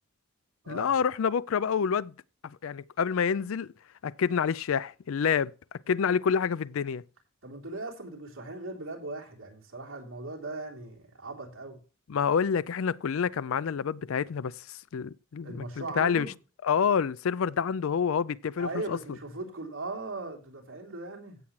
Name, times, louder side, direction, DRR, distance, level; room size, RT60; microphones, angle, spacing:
voice 1, 0.7-2.1 2.6-3.7 4.0-5.5 5.9-7.0 12.1-14.6 14.9-15.7 16.0-16.3 16.6-19.0, left 6 dB, 65° left, 0.4 m, -27 dB
voice 2, 7.4-11.8 15.4-16.3 18.6-21.4, right 2 dB, 70° right, 3.3 m, -39 dB
16.0 x 7.2 x 3.1 m
head